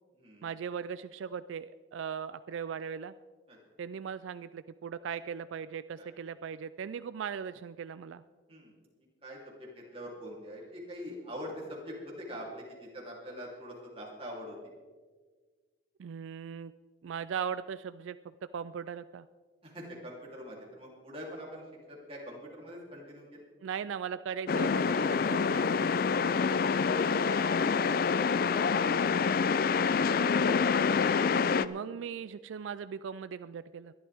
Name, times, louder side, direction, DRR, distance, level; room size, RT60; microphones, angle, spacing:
voice 1, 0.4-3.1 3.8-8.2 16.0-16.7 17.0-18.2 18.5-19.3 23.6-26.1 31.6-33.9, right 7 dB, 80° right, 14 dB, 0.3 m, -39 dB
voice 2, 9.2-14.6 19.6-23.4, equal, 30° right, -3 dB, 3.2 m, -44 dB
sound 1, 24.5-31.7, left 5 dB, 50° left, 0.4 m, -27 dB
22.0 x 11.5 x 3.5 m, 1.5 s
head